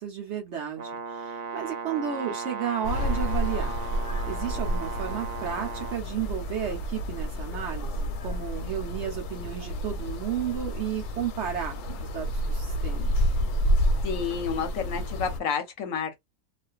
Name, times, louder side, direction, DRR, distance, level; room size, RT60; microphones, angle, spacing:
voice 1, 0.0-3.7 4.3-13.1, right 9 dB, 65° right, 0.7 m, -33 dB
Brass instrument, 0.8-6.0, right 5 dB, 85° right, 0.3 m, -36 dB
sound 1, 2.8-15.4, equal, 90° left, 1.1 m, -29 dB
voice 2, 14.0-16.2, left 7 dB, 70° left, 0.9 m, -30 dB
2.4 x 2.2 x 2.3 m
omnidirectional pair, 1.6 m